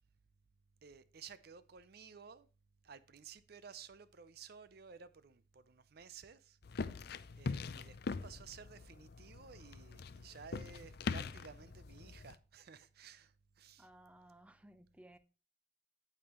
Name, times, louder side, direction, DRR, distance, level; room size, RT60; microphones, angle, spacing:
voice 1, 0.8-2.5 2.8-6.6 7.3-13.9, right 6 dB, 50° right, 0.5 m, -55 dB
sound 1, 6.6-12.4, left 4 dB, 55° left, 0.5 m, -43 dB
voice 2, 13.8-15.2, right 1 dB, 5° right, 0.6 m, -59 dB
8.9 x 8.7 x 3.0 m
head